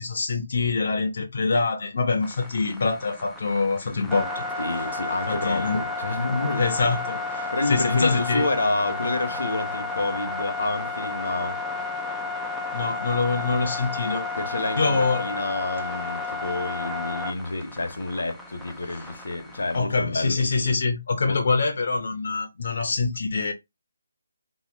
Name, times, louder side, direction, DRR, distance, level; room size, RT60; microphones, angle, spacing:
voice 1, 0.0-4.4 5.3-5.9 6.6-8.5 12.7-14.3 14.8-15.3 18.9-19.0 19.7-23.5, left 4 dB, 50° left, 0.6 m, -25 dB
sound 1, 2.2-19.8, left 3 dB, ahead, 0.3 m, -32 dB
voice 2, 4.6-6.9 7.5-11.6 14.4-20.4 21.2-21.4, left 2 dB, 85° left, 0.9 m, -29 dB
2.8 x 2.2 x 3.3 m
hypercardioid pair, 170°, 0 cm